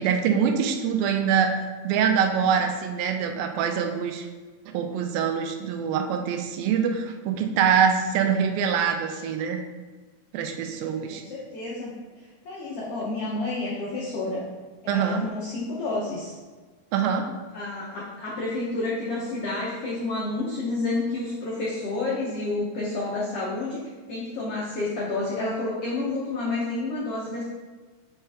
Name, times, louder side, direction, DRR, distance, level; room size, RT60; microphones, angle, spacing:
voice 1, 0.0-4.3 4.7-9.6 10.3-11.2 14.9-15.2 16.9-17.3, right 7 dB, 85° right, 5 dB, 2.4 m, -24 dB
voice 2, 11.1-11.9 12.4-14.4 14.8-16.3 17.5-27.4, left 2 dB, 90° left, -5 dB, 1.3 m, -30 dB
6.7 x 4.4 x 3.5 m, 1.4 s
omnidirectional pair, 4.2 m